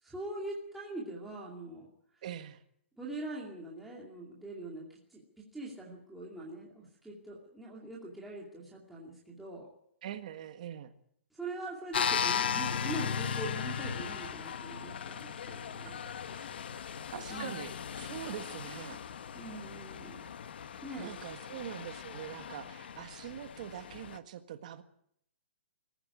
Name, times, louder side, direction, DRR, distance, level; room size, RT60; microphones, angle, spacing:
voice 1, 0.0-1.9 3.0-9.7 11.3-16.0 17.3-17.7 19.3-20.3 20.8-21.1, right 2 dB, ahead, -5 dB, 2.5 m, -43 dB
voice 2, 2.2-2.6 10.0-10.9 15.8-16.5 17.1-19.0 21.0-24.8, right 10 dB, 35° right, 9 dB, 1.6 m, -43 dB
sound 1, 11.9-24.2, left 7 dB, 50° left, 1.1 m, -37 dB
22.0 x 14.5 x 9.7 m, 0.70 s
hypercardioid pair, 175°, 7 cm